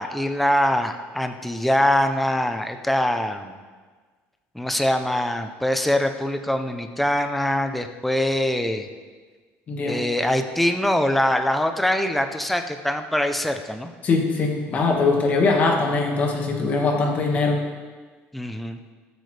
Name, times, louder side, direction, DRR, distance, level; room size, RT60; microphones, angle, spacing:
voice 1, 0.0-3.6 4.5-8.9 9.8-13.9 18.3-18.8, left 1 dB, ahead, 6 dB, 0.6 m, -23 dB
voice 2, 9.7-10.0 14.0-17.6, left 3 dB, 30° left, 1 dB, 1.8 m, -21 dB
19.5 x 8.1 x 3.4 m, 1.5 s
cardioid pair, 170°, 5 cm